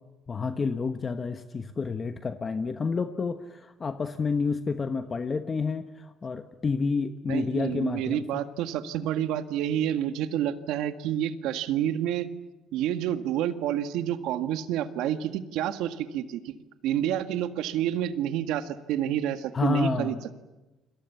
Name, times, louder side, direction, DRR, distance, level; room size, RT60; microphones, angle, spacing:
voice 1, 0.3-8.4 19.5-20.2, left 4 dB, 25° left, 9 dB, 1.2 m, -29 dB
voice 2, 7.3-12.3 12.7-16.6 16.8-20.2, right 11 dB, 90° right, 10 dB, 1.8 m, -29 dB
29.5 x 26.0 x 7.1 m, 1.1 s
cardioid pair, 145°, 0 cm